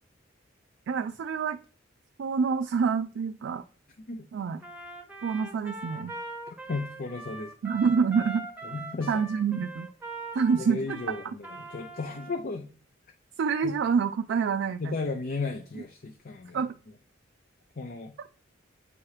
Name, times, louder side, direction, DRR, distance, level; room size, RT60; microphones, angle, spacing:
voice 1, 0.9-1.6 2.2-3.6 4.3-4.6 5.2-6.1 7.6-8.5 9.1-9.9 10.3-10.8 13.4-14.9 16.5-16.7, right 6 dB, 70° right, 6 dB, 0.3 m, -27 dB
Trumpet, 4.6-12.4, right 2 dB, 10° right, 0.9 m, -41 dB
voice 2, 6.5-7.5 8.6-9.2 10.6-12.7 13.6-13.8 14.8-16.6 17.8-18.1, left 3 dB, 50° left, 4 dB, 0.5 m, -35 dB
8.3 x 3.0 x 4.7 m, 0.39 s
head